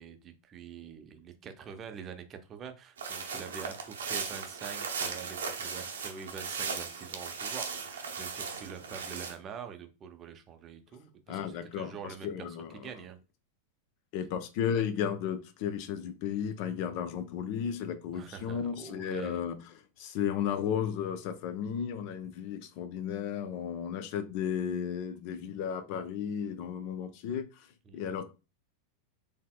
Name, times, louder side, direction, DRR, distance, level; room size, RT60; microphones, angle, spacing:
voice 1, 0.0-13.2 18.1-19.4 27.9-28.2, right 7 dB, 30° right, 0.6 m, -45 dB
sound 1, 3.0-9.3, right 5 dB, 65° right, 0.7 m, -37 dB
voice 2, 11.3-12.9 14.1-19.6 20.0-27.5 27.9-28.3, left 8 dB, 45° left, 0.6 m, -34 dB
4.1 x 3.4 x 2.2 m
figure-of-eight pair, 90°, 0 cm